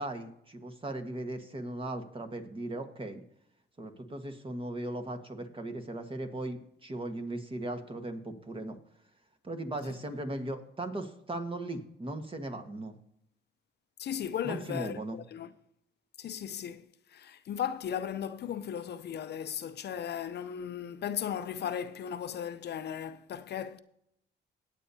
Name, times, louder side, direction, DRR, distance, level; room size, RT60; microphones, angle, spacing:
voice 1, 0.0-3.2 3.8-8.8 9.4-12.9 14.4-15.2, right 1 dB, 25° right, 1.5 m, -38 dB
voice 2, 14.0-15.0 15.3-15.5 16.2-16.8 17.1-23.8, left 9 dB, 55° left, 0.6 m, -36 dB
18.5 x 8.3 x 2.8 m
cardioid pair, 90°, 20 cm